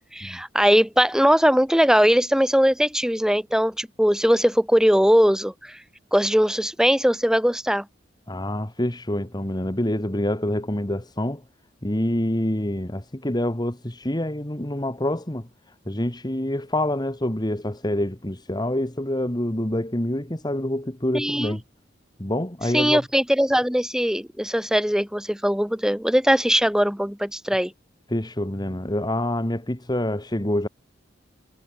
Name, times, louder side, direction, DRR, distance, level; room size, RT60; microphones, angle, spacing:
voice 1, 0.1-5.7 6.1-7.8 21.1-21.6 22.7-27.7, equal, 5° right, 5.0 m, -20 dB
voice 2, 8.3-11.4 11.8-15.5 15.9-21.6 22.2-23.0 28.1-30.7, left 1 dB, 25° left, 2.1 m, -26 dB
head